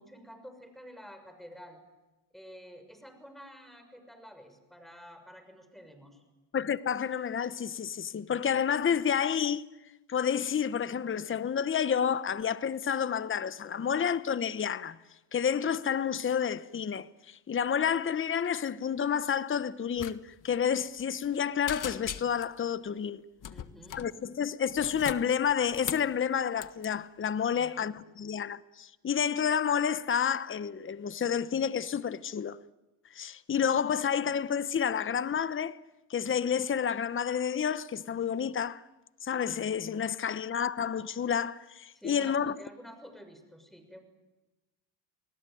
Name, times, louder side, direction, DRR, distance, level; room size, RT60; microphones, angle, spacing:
voice 1, 0.0-1.8 2.3-6.2 23.5-24.0 27.5-27.8 41.9-44.0, equal, ahead, 6.4 m, -50 dB
voice 2, 6.5-9.6 10.1-15.0 15.3-23.2 23.9-32.6 33.1-35.8 36.1-38.8 39.2-42.5, left 7 dB, 30° left, 1.0 m, -30 dB
sound 1, 20.0-20.2 20.4-20.6 21.0-21.4 21.7-22.6 23.4-24.1 24.7-26.1 26.6-26.9, left 9 dB, 45° left, 1.6 m, -39 dB
29.5 x 20.0 x 9.3 m
cardioid pair, 90°, 42 cm